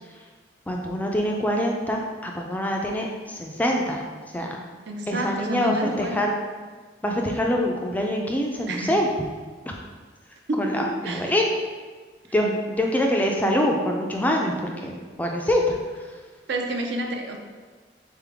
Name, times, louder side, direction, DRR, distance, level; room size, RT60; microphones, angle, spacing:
voice 1, 0.7-4.0 4.3-4.6 5.1-6.4 7.0-9.1 9.7-9.8 10.6-11.4 12.3-15.8, equal, 10° left, 0 dB, 0.3 m, -25 dB
voice 2, 4.9-6.2 8.7-8.9 10.5-11.3 16.5-17.4, right 1 dB, 70° right, 2 dB, 0.6 m, -29 dB
4.0 x 3.7 x 3.4 m, 1.4 s
head